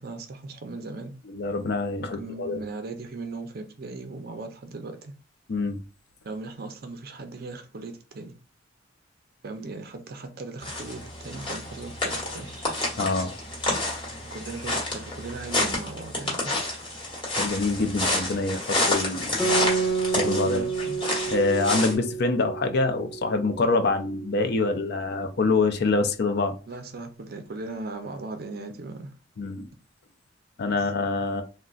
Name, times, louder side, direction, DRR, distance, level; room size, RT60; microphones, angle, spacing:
voice 1, 0.0-1.1 2.0-5.1 6.2-8.3 9.4-12.5 14.2-16.5 20.4-21.0 26.7-29.1, right 3 dB, 55° right, 0.5 m, -38 dB
voice 2, 1.3-2.6 5.5-5.8 13.0-13.3 17.4-19.3 20.1-20.6 21.3-26.5 29.4-29.7 30.6-31.4, left 3 dB, 55° left, 0.5 m, -25 dB
sound 1, 10.6-21.9, left 2 dB, 25° left, 1.2 m, -29 dB
Guitar, 19.4-24.3, right 5 dB, 5° left, 1.1 m, -29 dB
3.7 x 2.2 x 2.4 m
head